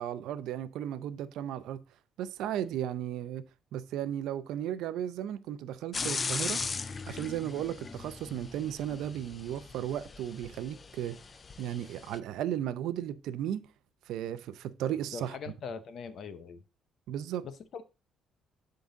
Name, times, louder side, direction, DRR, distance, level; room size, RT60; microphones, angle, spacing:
voice 1, 0.0-1.8 2.2-3.5 3.7-6.6 7.1-11.2 11.6-13.7 14.1-15.4 17.1-17.5, right 11 dB, 85° right, 0.6 m, -35 dB
sound 1, 5.9-12.2, left 4 dB, 25° left, 0.4 m, -38 dB
voice 2, 15.1-16.6 17.4-17.8, left 5 dB, 55° left, 0.8 m, -41 dB
11.0 x 3.8 x 3.8 m
cardioid pair, 140°, 0 cm